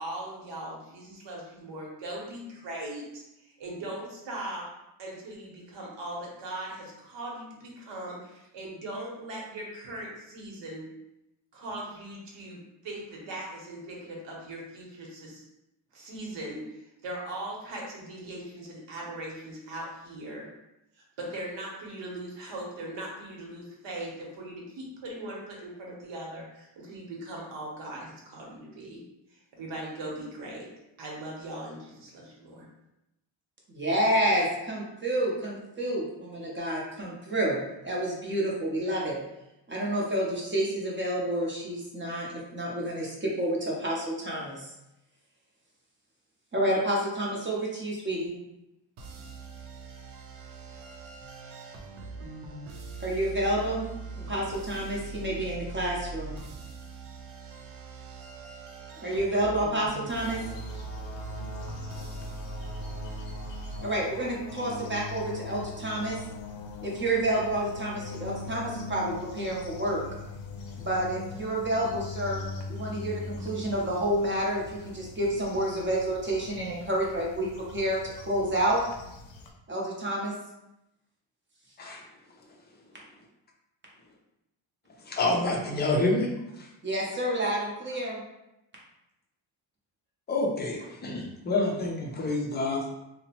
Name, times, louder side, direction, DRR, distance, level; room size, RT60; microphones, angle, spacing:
voice 1, 0.0-4.7 5.0-10.9 11.5-15.4 15.9-16.8 17.0-20.5 21.2-29.0 29.3-30.7 31.0-32.7, right 1 dB, 65° right, -2 dB, 1.0 m, -39 dB
voice 2, 33.7-37.6 37.8-39.2 39.7-44.7 46.5-48.3 53.0-53.9 54.2-56.4 59.0-60.4 63.8-66.2 66.8-70.0 70.8-72.4 72.7-78.8 79.7-80.3 86.8-88.2, right 1 dB, 25° right, -4 dB, 0.6 m, -29 dB
sound 1, 49.0-63.8, right 3 dB, 80° right, 0.6 m, -41 dB
sound 2, 60.2-79.5, left 3 dB, 70° left, 0.6 m, -41 dB
voice 3, 85.0-86.3 86.6-86.7 90.3-92.9, left 2 dB, 25° left, 0 dB, 0.4 m, -28 dB
2.8 x 2.0 x 2.8 m, 0.89 s
cardioid pair, 125°, 47 cm